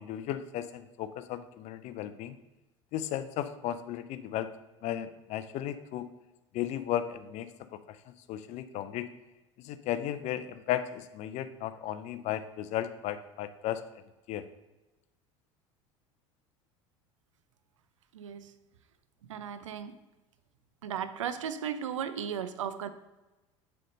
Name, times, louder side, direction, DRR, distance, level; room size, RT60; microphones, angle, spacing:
voice 1, 0.0-2.4 2.9-4.5 4.8-6.1 6.5-7.5 7.9-8.0 8.3-9.1 9.6-13.8 14.3-14.4, left 11 dB, 45° left, 11 dB, 0.5 m, -35 dB
voice 2, 18.1-18.5 19.3-19.9 20.8-22.9, right 8 dB, 75° right, 12 dB, 0.5 m, -35 dB
7.5 x 3.4 x 5.3 m, 1.1 s
figure-of-eight pair, 70°, 16 cm